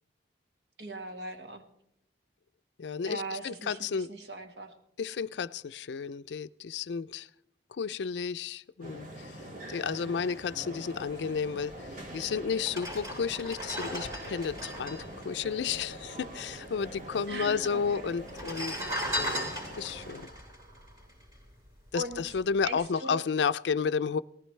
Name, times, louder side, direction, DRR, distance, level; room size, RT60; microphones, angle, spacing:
voice 1, 0.8-1.6 3.1-4.7 17.3-18.2 21.9-22.3 22.6-23.2, right 1 dB, 65° right, 5 dB, 1.5 m, -39 dB
voice 2, 2.8-4.1 5.0-7.3 7.7-9.4 9.7-11.9 12.1-18.8 19.2-19.5 19.8-20.3 21.9-24.2, left 6 dB, 75° left, 15 dB, 0.4 m, -32 dB
sound 1, 8.8-20.3, equal, 50° right, 2.1 m, -44 dB
sound 2, 11.9-12.0 12.6-16.3 16.5-16.6 16.8-17.5 18.2-21.7 22.1-22.3, equal, 25° right, 4.0 m, -37 dB
18.5 x 14.5 x 3.2 m, 0.75 s
head